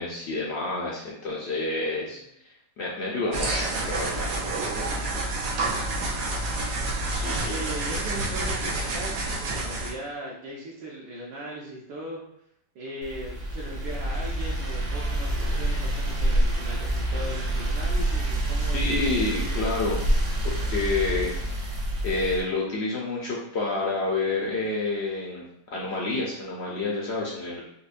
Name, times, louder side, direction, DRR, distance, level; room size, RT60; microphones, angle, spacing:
voice 1, 0.0-4.3 7.1-7.6 18.7-20.0 20.4-21.3 22.0-25.5 25.7-27.6, left 3 dB, 90° left, -4 dB, 0.5 m, -29 dB
sound 1, 3.3-9.9, right 2 dB, 85° right, 1.4 m, -28 dB
voice 2, 7.2-12.2 12.7-19.8, right 1 dB, 70° right, -4 dB, 1.1 m, -39 dB
sound 2, 13.0-22.4, right 1 dB, 50° right, 0.7 m, -27 dB
5.1 x 2.1 x 2.4 m, 0.76 s
omnidirectional pair, 1.9 m